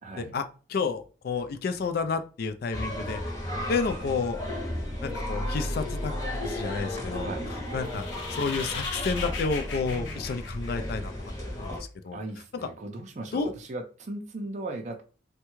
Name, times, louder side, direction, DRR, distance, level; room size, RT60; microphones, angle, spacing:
voice 1, 0.0-0.4 7.2-7.5 12.1-15.0, right 2 dB, 40° right, 3 dB, 0.5 m, -37 dB
voice 2, 0.7-3.2 3.7-4.4 5.0-6.1 6.4-7.3 7.7-11.1 11.5-11.7 12.0-12.2 13.3-13.5, left 4 dB, 55° left, 9 dB, 0.3 m, -30 dB
sound 1, 2.7-11.8, left 1 dB, 20° left, 0.8 m, -34 dB
sound 2, 7.7-11.3, left 4 dB, 75° left, 0.7 m, -38 dB
3.4 x 2.2 x 3.0 m, 0.37 s
head